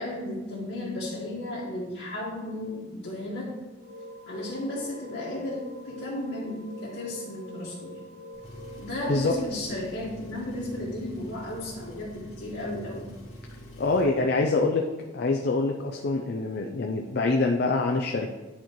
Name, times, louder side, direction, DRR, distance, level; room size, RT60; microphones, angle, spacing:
voice 1, 0.0-3.5 4.3-8.0 8.8-13.0, left 1 dB, 70° left, -9 dB, 1.6 m, -34 dB
sound 1, 3.8-8.9, left 1 dB, 15° right, 1.8 m, -44 dB
Engine, 8.3-14.2, equal, 85° left, 2.0 m, -45 dB
voice 2, 13.8-14.9 15.1-18.3, left 3 dB, 50° left, 1 dB, 0.5 m, -25 dB
10.0 x 4.3 x 3.0 m, 1.1 s
head